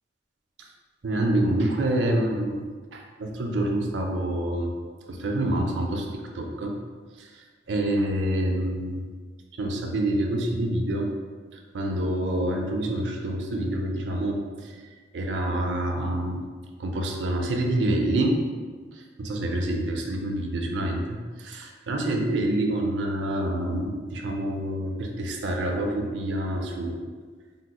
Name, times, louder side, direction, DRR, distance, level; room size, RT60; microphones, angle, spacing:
voice 1, 1.0-2.7 2.9-4.7 5.1-6.7 7.2-7.3 7.7-9.0 9.6-11.1 11.7-14.8 15.1-16.4 16.8-18.4 19.2-21.2 21.4-27.0, right 1 dB, 80° right, 2 dB, 0.5 m, -27 dB
3.4 x 2.9 x 2.2 m, 1.5 s
head